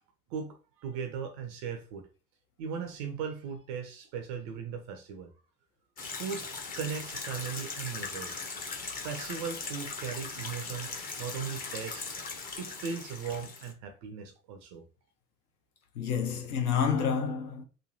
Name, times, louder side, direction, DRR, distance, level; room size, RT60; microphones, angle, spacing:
voice 1, 0.3-2.1 2.6-5.3 6.1-6.5 6.8-8.4 9.0-12.1 12.6-14.9, right 6 dB, 30° right, 0.4 m, -38 dB
sound 1, 6.0-13.7, left 4 dB, 20° left, 0.6 m, -39 dB
voice 2, 15.9-17.6, left 7 dB, 65° left, 0.9 m, -29 dB
3.0 x 2.3 x 2.6 m
figure-of-eight pair, 85°, 49 cm